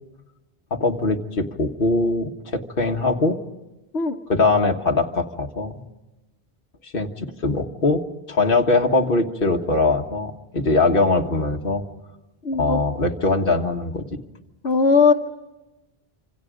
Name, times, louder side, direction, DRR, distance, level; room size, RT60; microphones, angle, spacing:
voice 1, 0.7-3.4 4.3-5.8 6.8-11.8 12.6-14.0, left 3 dB, 60° left, 3 dB, 1.7 m, -21 dB
voice 2, 12.4-12.8 14.6-15.1, left 5 dB, 90° left, 4 dB, 1.4 m, -18 dB
27.5 x 26.5 x 5.1 m, 1.1 s
omnidirectional pair, 1.0 m